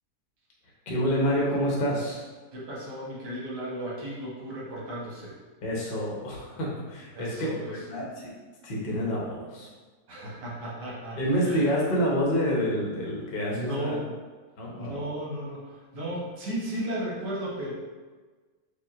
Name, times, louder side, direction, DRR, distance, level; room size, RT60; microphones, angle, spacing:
voice 1, 0.9-2.2 5.6-8.3 8.6-9.7 11.2-14.0 14.6-15.1, equal, 45° left, -4 dB, 0.8 m, -28 dB
voice 2, 2.5-5.3 7.1-7.7 10.1-11.6 13.5-14.0 14.7-17.7, right 1 dB, 85° right, -6 dB, 1.6 m, -35 dB
5.1 x 2.5 x 2.4 m, 1.4 s
omnidirectional pair, 1.8 m